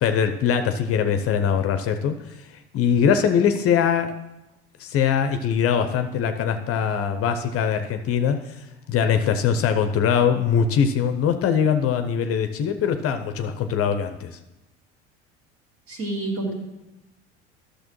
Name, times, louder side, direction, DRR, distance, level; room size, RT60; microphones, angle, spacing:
voice 1, 0.0-2.2 2.7-4.1 4.8-8.6 8.9-14.4, left 7 dB, 40° left, 8 dB, 0.7 m, -22 dB
voice 2, 15.9-16.6, right 2 dB, 40° right, 0 dB, 2.4 m, -28 dB
12.0 x 6.5 x 3.1 m, 0.98 s
hypercardioid pair, 70°, 34 cm